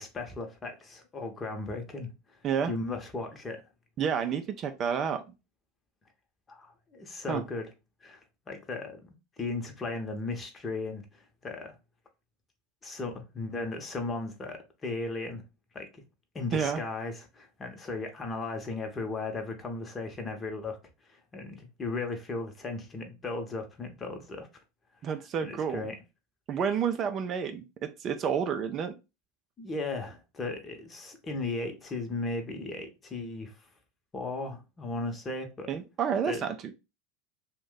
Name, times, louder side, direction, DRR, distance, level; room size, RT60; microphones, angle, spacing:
voice 1, 0.0-2.1 2.7-3.6 6.5-7.7 8.0-11.8 12.8-15.4 15.7-16.0 16.3-20.8 21.1-24.5 25.4-26.0 29.6-33.6 34.1-35.7 36.3-36.4, left 3 dB, 25° left, 0.9 m, -36 dB
voice 2, 4.0-5.2 7.3-7.4 16.5-16.8 25.0-25.9 26.5-28.9 35.7-36.7, right 7 dB, 40° right, 0.4 m, -30 dB
2.6 x 2.2 x 3.7 m
hypercardioid pair, 90°, 0 cm